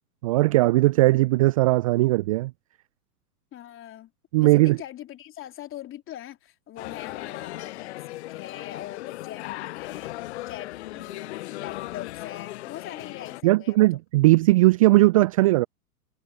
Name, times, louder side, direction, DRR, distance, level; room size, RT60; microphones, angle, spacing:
voice 1, 0.2-2.5 4.3-4.8 13.4-15.7, right 19 dB, 25° right, 0.3 m, -18 dB
voice 2, 3.5-4.1 4.4-10.2 10.4-13.8, left 12 dB, 25° left, 3.5 m, -41 dB
sound 1, 6.8-13.4, left 17 dB, 50° left, 0.5 m, -37 dB
figure-of-eight pair, 105°, 45 cm